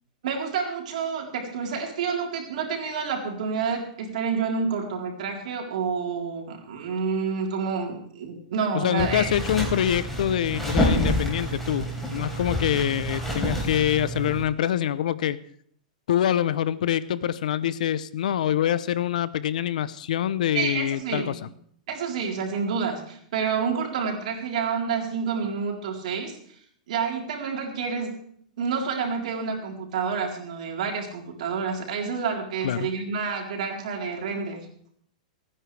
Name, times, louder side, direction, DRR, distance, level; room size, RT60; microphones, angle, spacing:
voice 1, 0.2-9.3 20.5-21.4 21.9-26.4 26.9-28.2 28.6-34.6, right 5 dB, 70° right, 0 dB, 4.0 m, -29 dB
voice 2, 8.7-15.4 16.1-21.3 32.6-32.9, left 10 dB, 75° left, 16 dB, 0.7 m, -25 dB
sound 1, 9.0-14.4, equal, 5° left, 4.1 m, -28 dB
28.0 x 10.0 x 3.4 m, 0.64 s
hypercardioid pair, 135°, 4 cm